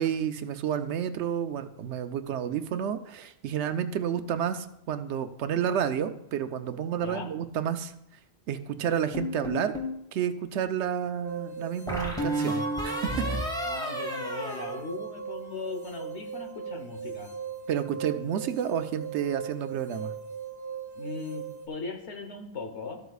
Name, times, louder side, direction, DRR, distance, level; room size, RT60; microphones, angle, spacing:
voice 1, 0.0-7.9 8.5-9.7 10.1-13.2 17.7-20.1, right 9 dB, 85° right, 10 dB, 0.9 m, -30 dB
sound 1, 9.1-10.0 11.9-15.5, equal, 5° left, 1.2 m, -32 dB
sound 2, 11.2-21.7, right 7 dB, 15° right, 1.2 m, -39 dB
voice 2, 13.6-17.3 20.9-23.0, left 4 dB, 80° left, 4 dB, 1.4 m, -38 dB
13.5 x 7.9 x 2.4 m, 0.78 s
omnidirectional pair, 1.1 m